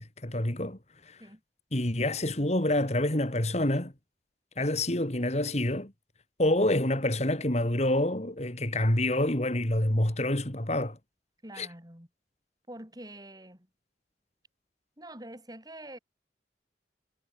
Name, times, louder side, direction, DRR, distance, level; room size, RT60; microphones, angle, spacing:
voice 1, 0.0-1.2 1.7-3.9 4.6-5.9 6.4-11.0 11.6-11.7, left 1 dB, 40° left, 2.8 m, -27 dB
voice 2, 11.4-12.1 12.7-13.7 15.0-16.0, right 1 dB, 20° right, 7.2 m, -45 dB
head